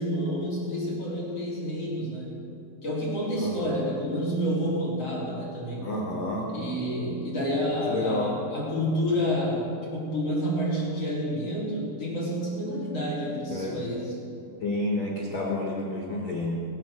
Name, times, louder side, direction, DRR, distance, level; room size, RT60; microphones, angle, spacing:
voice 1, 0.0-2.4 2.8-5.9 6.5-14.1, equal, 30° left, -7 dB, 4.4 m, -29 dB
voice 2, 3.3-3.8 5.8-6.5 7.9-8.3 13.5-13.8 14.6-16.6, left 2 dB, 80° left, -1 dB, 1.5 m, -30 dB
24.0 x 8.7 x 6.6 m, 2.8 s
omnidirectional pair, 6.0 m